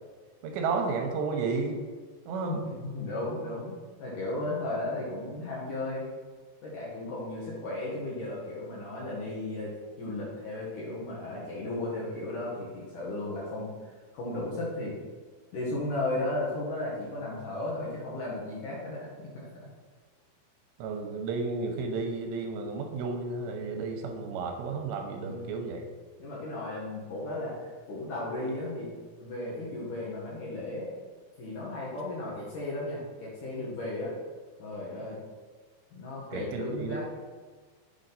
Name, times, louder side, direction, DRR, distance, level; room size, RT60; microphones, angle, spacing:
voice 1, 0.4-1.8 2.3-2.6 20.8-25.8 36.3-37.0, right 4 dB, 85° right, 3 dB, 2.8 m, -32 dB
voice 2, 2.5-6.1 6.6-9.7 10.0-13.7 14.1-14.9 15.5-19.3 25.2-25.6 26.2-28.9 29.2-30.9 31.4-34.2 34.6-35.2 35.9-37.0, left 2 dB, 60° left, -6 dB, 2.3 m, -35 dB
7.2 x 5.1 x 4.0 m, 1.5 s
omnidirectional pair, 5.1 m